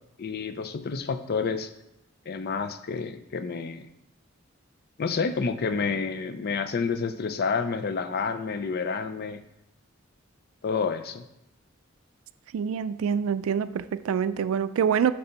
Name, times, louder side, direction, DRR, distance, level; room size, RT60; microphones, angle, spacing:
voice 1, 0.2-1.7 2.3-3.9 5.0-9.4 10.6-11.3, left 5 dB, 50° left, 10 dB, 0.4 m, -29 dB
voice 2, 12.5-15.1, right 7 dB, 90° right, 14 dB, 0.3 m, -26 dB
6.6 x 3.4 x 5.7 m, 0.85 s
head